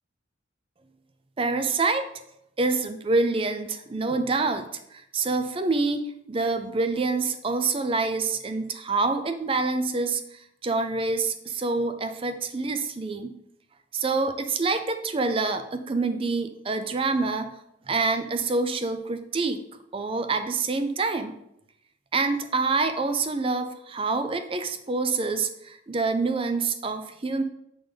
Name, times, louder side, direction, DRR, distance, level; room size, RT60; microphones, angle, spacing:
voice 1, 1.4-2.1 2.6-6.0 6.3-13.3 13.9-17.5 17.9-19.6 19.9-21.3 22.1-27.4, right 3 dB, 30° right, 9 dB, 0.4 m, -26 dB
7.5 x 3.8 x 3.4 m, 0.79 s
head